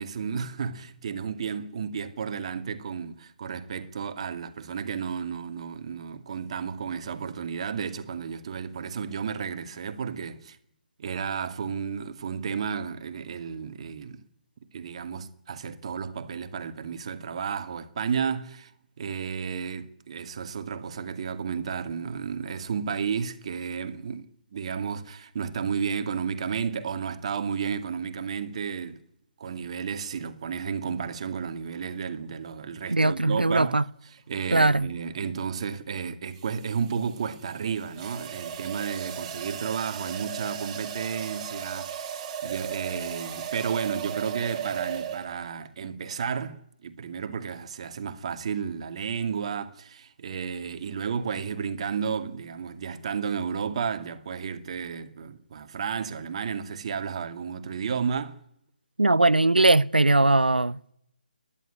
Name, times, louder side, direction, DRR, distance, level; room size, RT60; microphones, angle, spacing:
voice 1, 0.0-10.6 11.0-14.2 14.7-18.7 19.0-29.0 29.4-58.4, right 6 dB, 40° right, 2.2 m, -32 dB
voice 2, 32.9-33.8 34.5-34.9 59.0-60.9, right 2 dB, 85° right, 0.8 m, -20 dB
sound 1, 34.4-34.7 36.4-45.6, right 8 dB, 25° right, 3.3 m, -36 dB
29.5 x 11.0 x 9.9 m
figure-of-eight pair, 145°, 5 cm